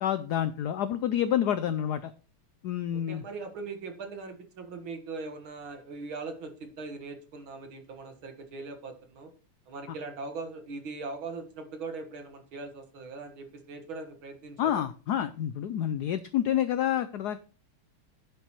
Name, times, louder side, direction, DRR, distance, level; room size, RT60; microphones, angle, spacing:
voice 1, 0.0-2.1 2.6-3.2 14.6-17.4, left 10 dB, 80° left, 12 dB, 0.9 m, -28 dB
voice 2, 2.9-9.3 9.7-14.8, right 3 dB, 70° right, 5 dB, 2.4 m, -40 dB
10.5 x 7.9 x 3.1 m, 0.35 s
omnidirectional pair, 2.4 m